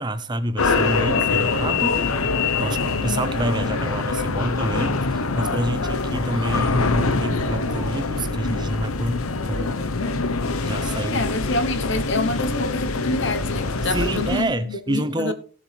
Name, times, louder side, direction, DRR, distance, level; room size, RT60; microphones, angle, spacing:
voice 1, 0.0-2.0 2.6-9.8 10.6-11.3 13.8-15.3, right 1 dB, 20° right, 0.6 m, -27 dB
sound 1, 0.6-14.4, left 3 dB, 80° left, 1.0 m, -24 dB
voice 2, 11.1-15.3, left 2 dB, 55° left, 1.1 m, -27 dB
17.0 x 7.3 x 3.4 m
head